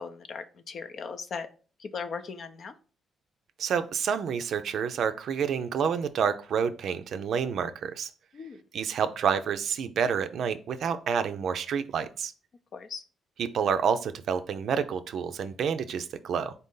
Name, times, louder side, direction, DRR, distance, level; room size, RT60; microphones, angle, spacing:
voice 1, 0.0-1.5 1.8-2.7 8.3-8.6 12.7-13.0, left 5 dB, 60° left, 9 dB, 0.5 m, -38 dB
voice 2, 3.6-8.1 8.7-12.3 13.4-16.5, right 7 dB, 70° right, 10 dB, 0.4 m, -28 dB
4.0 x 2.7 x 3.7 m, 0.37 s
supercardioid pair, 60°, 0 cm